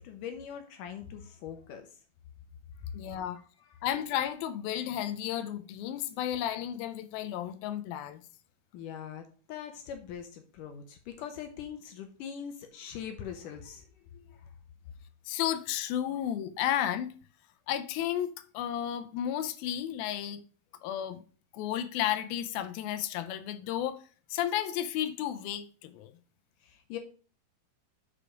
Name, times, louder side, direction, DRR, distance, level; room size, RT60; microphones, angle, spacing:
voice 1, 0.0-1.9 8.7-13.9 14.1-14.4 26.6-27.0, left 8 dB, 70° left, 2.3 m, -42 dB
voice 2, 2.9-3.4 3.8-8.2 15.3-17.1 17.7-20.4 20.8-21.2 21.5-24.0 24.3-26.1, left 11 dB, 90° left, 2.5 m, -33 dB
7.2 x 5.0 x 5.0 m
omnidirectional pair, 4.2 m